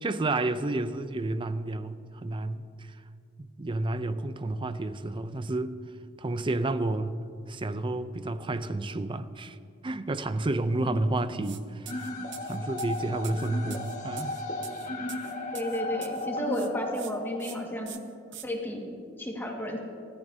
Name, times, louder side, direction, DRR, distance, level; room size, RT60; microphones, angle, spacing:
voice 1, 0.0-2.9 3.6-5.8 6.2-7.2 7.5-9.6 9.8-14.4, right 2 dB, 25° right, 0.5 m, -31 dB
sound 1, 11.4-11.6 11.9-16.3 16.5-17.1 17.4-17.6 17.9-18.5, right 11 dB, 65° right, 0.8 m, -45 dB
sound 2, 11.9-17.9, left 2 dB, 40° left, 1.6 m, -35 dB
voice 2, 15.5-18.0 18.4-19.8, equal, 10° left, 1.8 m, -33 dB
25.5 x 14.0 x 2.8 m
head